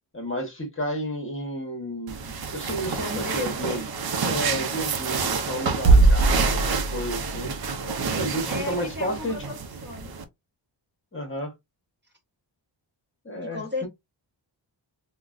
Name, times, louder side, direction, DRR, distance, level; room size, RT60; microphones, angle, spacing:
voice 1, 0.1-3.9 4.3-7.5 8.1-9.4 11.1-11.5 13.2-13.9, equal, 30° left, 1.1 m, -32 dB
sound 1, 2.1-10.2, right 4 dB, 55° right, 0.7 m, -24 dB
voice 2, 3.0-3.9 8.5-10.1 13.4-13.9, left 3 dB, 25° right, 1.0 m, -35 dB
3.7 x 2.2 x 2.4 m
wide cardioid pair, 125°, 43 cm